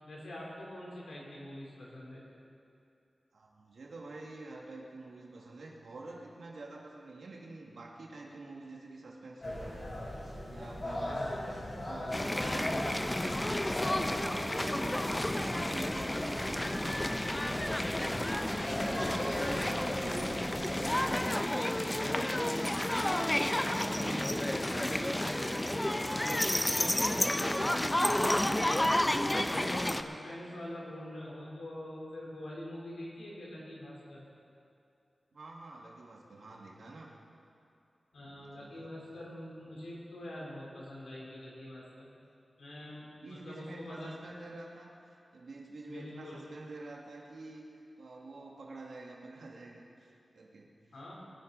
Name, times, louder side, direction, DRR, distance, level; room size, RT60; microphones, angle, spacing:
voice 1, 0.0-2.2 11.0-11.3 19.0-20.3 21.9-22.3 23.5-24.1 27.5-27.7 29.2-34.2 38.1-42.1 42.6-44.1 45.9-46.4 50.9-51.1, left 1 dB, 90° left, -5 dB, 3.8 m, -45 dB
voice 2, 3.3-10.0 10.5-11.3 11.9-13.3 13.8-18.6 19.1-21.0 21.4-22.2 23.2-25.9 26.5-28.2 35.3-37.1 38.4-38.9 42.9-47.6 48.0-50.7, right 2 dB, 80° right, -2 dB, 2.2 m, -48 dB
sound 1, 9.4-21.1, left 1 dB, 50° left, 4.3 m, -39 dB
sound 2, 12.1-30.0, left 1 dB, 20° left, 0.8 m, -31 dB
23.0 x 10.0 x 4.1 m, 2.6 s
cardioid pair, 40°, 0 cm